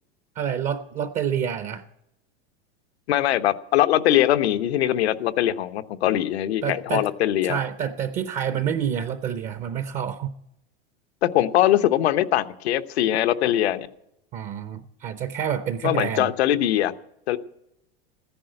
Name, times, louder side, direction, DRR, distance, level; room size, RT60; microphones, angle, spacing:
voice 1, 0.4-1.8 6.6-7.1 7.4-10.3 14.3-16.3, right 8 dB, 25° right, 0.5 m, -28 dB
voice 2, 3.1-7.6 11.2-13.9 15.8-16.9 17.3-17.4, left 13 dB, 90° left, 1.0 m, -22 dB
14.0 x 10.0 x 7.7 m
supercardioid pair, 155°, 31 cm